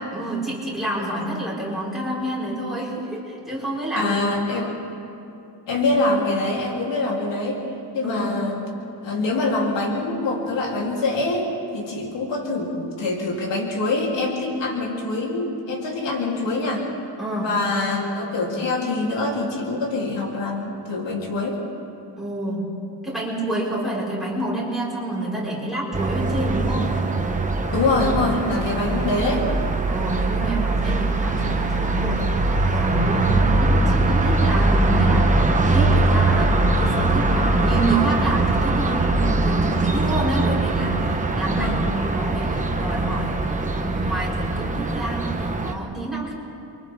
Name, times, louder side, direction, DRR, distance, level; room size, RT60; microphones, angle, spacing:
voice 1, 0.1-4.1 4.5-4.7 8.0-8.4 17.2-17.6 22.2-22.8 23.0-26.9 28.6-29.1 29.9-32.4 32.7-43.5 43.8-46.3, right 1 dB, ahead, -7 dB, 5.4 m, -28 dB
voice 2, 4.0-4.7 5.7-7.6 7.9-8.6 9.0-16.9 17.4-21.6 27.7-29.5 41.5-41.8, left 2 dB, 85° left, -2 dB, 3.7 m, -24 dB
sound 1, 25.9-45.7, right 2 dB, 15° right, 1.1 m, -21 dB
29.5 x 24.5 x 3.7 m, 2.7 s
wide cardioid pair, 160°, 43 cm